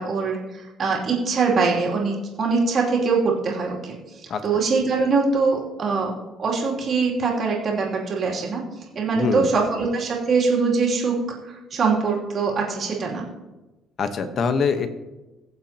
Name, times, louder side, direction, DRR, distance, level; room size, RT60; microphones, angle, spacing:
voice 1, 0.0-4.0 4.4-6.1 6.4-8.6 8.9-11.2 11.4-13.2, right 4 dB, 45° right, -2 dB, 2.7 m, -23 dB
voice 2, 9.1-9.5 14.0-14.9, left 5 dB, 45° left, 9 dB, 1.0 m, -23 dB
22.0 x 7.4 x 2.9 m, 1.1 s
cardioid pair, 125°, 0 cm